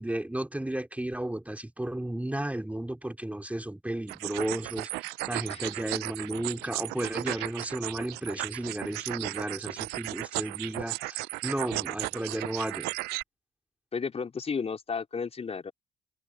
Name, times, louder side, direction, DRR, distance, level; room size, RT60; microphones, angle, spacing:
voice 1, 0.0-12.9, right 1 dB, 10° right, 3.2 m, -33 dB
sound 1, 4.1-13.2, right 23 dB, 75° right, 0.5 m, -35 dB
voice 2, 13.9-15.7, left 5 dB, 35° left, 4.4 m, -33 dB
hypercardioid pair, 55°, 17 cm